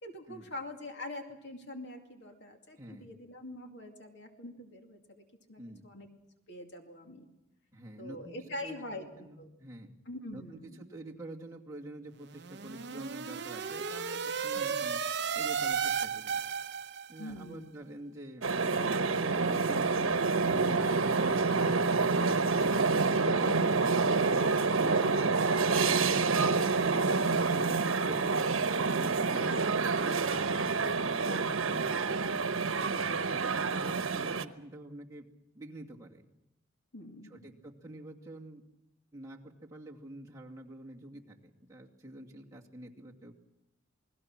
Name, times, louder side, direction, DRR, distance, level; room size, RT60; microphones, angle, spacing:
voice 1, 0.0-6.1 6.5-7.3 8.0-9.5 10.1-10.8 14.5-15.0 17.2-17.7 36.9-37.3, left 1 dB, 60° left, 3 dB, 2.5 m, -44 dB
voice 2, 2.8-3.1 5.6-5.9 7.7-9.9 10.3-15.0 15.3-16.4 17.1-18.5 19.0-22.5 22.9-25.5 27.8-32.0 32.7-35.3 35.5-36.3 37.3-38.6 39.1-43.3, right 1 dB, 15° right, -3 dB, 2.4 m, -47 dB
sound 1, 12.3-17.3, right 6 dB, 55° right, 0.8 m, -34 dB
sound 2, 18.4-34.5, right 4 dB, 85° right, 1.1 m, -28 dB
28.5 x 20.0 x 6.1 m, 0.89 s
head